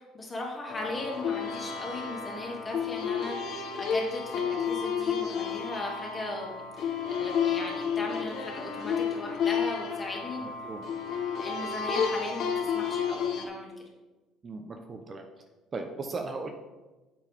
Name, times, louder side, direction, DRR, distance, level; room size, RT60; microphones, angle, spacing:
voice 1, 0.0-10.7 11.1-13.7, left 2 dB, 20° left, -1 dB, 2.3 m, -38 dB
sound 1, 0.7-13.5, left 7 dB, 60° left, 1.1 m, -31 dB
voice 2, 14.4-15.2 15.7-16.5, right 3 dB, 30° right, 4 dB, 0.8 m, -36 dB
9.2 x 7.5 x 3.5 m, 1.2 s
cardioid pair, 125°, 0 cm